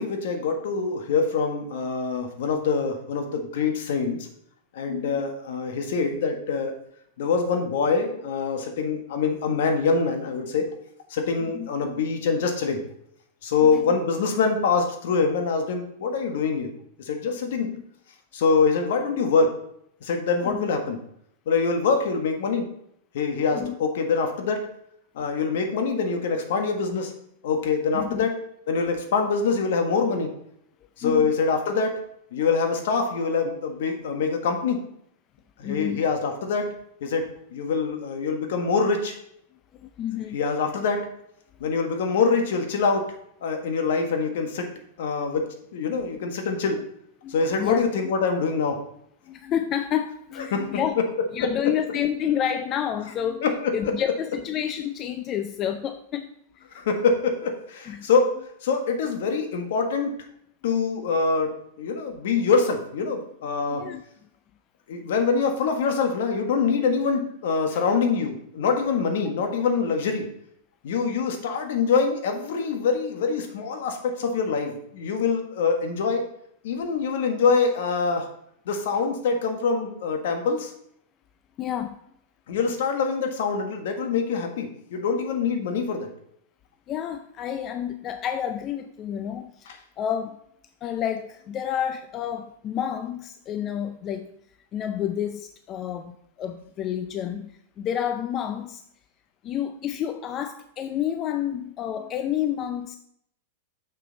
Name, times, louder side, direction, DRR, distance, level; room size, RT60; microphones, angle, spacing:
voice 1, 0.0-4.3 4.7-6.7 7.2-10.7 11.1-12.8 13.4-16.7 17.0-17.7 18.3-19.6 20.0-21.0 21.5-22.7 23.1-24.7 25.1-27.1 27.4-28.4 28.7-30.3 31.0-32.0 32.3-34.9 35.6-36.7 37.0-39.1 40.3-41.1 41.6-43.1 43.4-44.7 45.0-46.8 47.3-48.8 50.5-50.7 51.4-51.5 53.4-53.9 56.7-58.3 58.6-60.2 60.6-63.9 64.9-70.2 70.8-76.3 76.6-78.3 78.6-80.7 82.5-86.1 89.7-89.8, left 5 dB, 70° left, 1.3 m, -24 dB
voice 2, 4.9-5.2 11.5-11.7 13.7-14.0 17.6-17.9 20.4-20.7 23.5-23.7 25.3-25.4 27.9-28.3 31.0-31.3 35.6-36.1 39.7-40.4 45.9-46.0 47.2-47.8 49.3-51.0 51.3-56.8 57.8-58.1 63.7-64.0 67.7-67.8 76.7-76.9 81.6-82.0 86.9-90.4 90.8-94.3 94.7-98.8 99.4-103.0, left 9 dB, 35° left, 0.4 m, -30 dB
6.6 x 6.1 x 4.0 m
hypercardioid pair, 120°, 0 cm